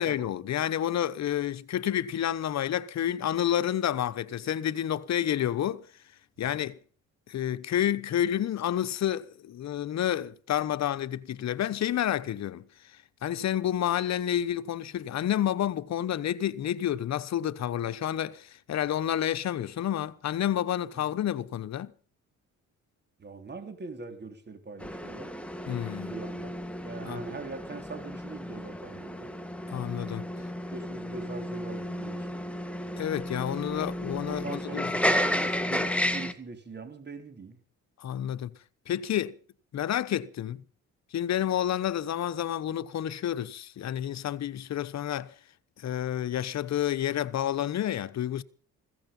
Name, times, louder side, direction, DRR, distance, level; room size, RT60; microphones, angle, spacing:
voice 1, 0.0-5.9 6.4-6.8 7.3-12.6 13.2-21.9 25.7-26.2 27.0-27.3 29.7-30.3 33.0-34.9 38.0-38.5 38.9-39.3 39.7-40.6 41.1-45.3 45.8-48.4, left 11 dB, 60° left, 1.1 m, -29 dB
voice 2, 23.2-25.3 26.1-26.6 26.8-29.3 30.7-32.3 33.7-33.9 34.2-37.6, right 3 dB, 35° right, 3.9 m, -42 dB
sound 1, 24.8-36.3, equal, 5° left, 1.8 m, -33 dB
16.0 x 15.5 x 5.5 m
cardioid pair, 90°, 30 cm